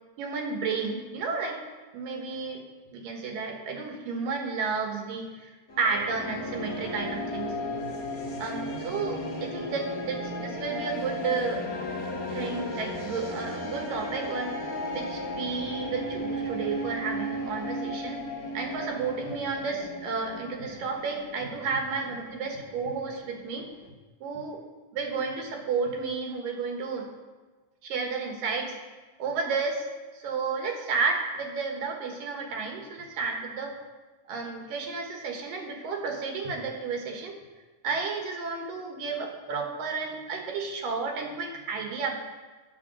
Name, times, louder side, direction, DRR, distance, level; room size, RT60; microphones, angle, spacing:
voice 1, 0.2-1.6 1.9-2.6 2.9-7.6 8.4-11.6 12.3-18.2 18.5-23.7 24.2-24.6 24.9-27.1 27.8-28.8 29.2-29.9 30.1-33.8 34.3-37.4 37.8-42.1, right 4 dB, 85° right, 2 dB, 3.1 m, -32 dB
sound 1, 5.7-23.9, left 1 dB, 65° left, 0.8 m, -35 dB
10.5 x 8.4 x 6.1 m, 1.3 s
omnidirectional pair, 3.8 m